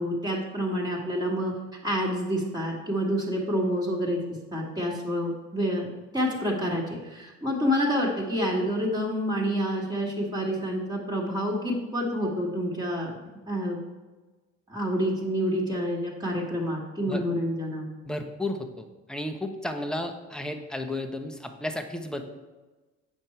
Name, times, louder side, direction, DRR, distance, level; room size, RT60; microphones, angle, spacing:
voice 1, 0.0-1.5 1.8-4.2 4.5-5.9 6.1-13.1 13.5-13.8 14.7-17.9, equal, 15° right, -4 dB, 1.7 m, -28 dB
voice 2, 18.0-22.2, left 1 dB, ahead, 5 dB, 0.9 m, -33 dB
7.8 x 5.4 x 4.4 m, 1.2 s
cardioid pair, 90°, 30 cm